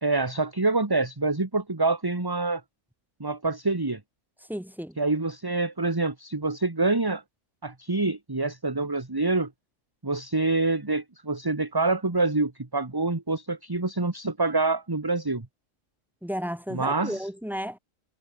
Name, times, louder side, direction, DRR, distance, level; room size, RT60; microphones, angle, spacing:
voice 1, 0.0-2.6 3.2-4.0 5.0-7.2 7.6-9.5 10.0-15.4 16.7-17.3, right 3 dB, 20° right, 1.4 m, -26 dB
voice 2, 4.5-4.9 16.2-17.8, equal, ahead, 3.1 m, -33 dB
omnidirectional pair, 1.3 m